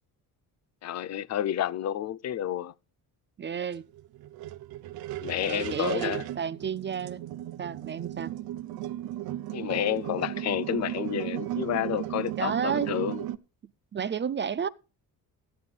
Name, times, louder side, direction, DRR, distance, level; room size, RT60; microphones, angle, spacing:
voice 1, 0.8-2.7 5.2-6.2 9.5-13.2, left 11 dB, 45° left, 0.5 m, -30 dB
voice 2, 3.4-3.8 5.4-7.2 7.6-8.3 12.4-12.9 13.9-14.7, right 7 dB, 30° right, 0.5 m, -31 dB
sound 1, 3.7-13.4, right 14 dB, 80° right, 0.8 m, -35 dB
13.5 x 11.0 x 3.3 m
cardioid pair, 105°, 37 cm